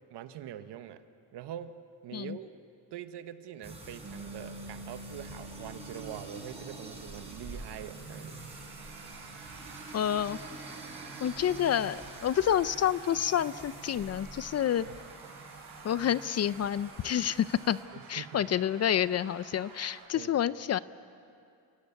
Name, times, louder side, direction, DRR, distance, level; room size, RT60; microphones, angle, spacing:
voice 1, 0.1-1.0 1.3-2.5 2.9-8.4 14.8-15.0 17.9-18.5 20.1-20.3, right 10 dB, 70° right, 10 dB, 1.3 m, -44 dB
sound 1, 3.6-17.8, right 2 dB, 15° right, 6.0 m, -47 dB
Bass guitar, 4.0-10.3, right 1 dB, 30° right, 5.9 m, -50 dB
sound 2, 6.3-20.1, right 5 dB, 50° right, 3.7 m, -50 dB
voice 2, 9.9-10.4 11.2-14.9 15.8-17.8 18.1-20.8, left 10 dB, 40° left, 17 dB, 0.5 m, -28 dB
28.5 x 17.5 x 8.4 m, 2.5 s
cardioid pair, 120°, 42 cm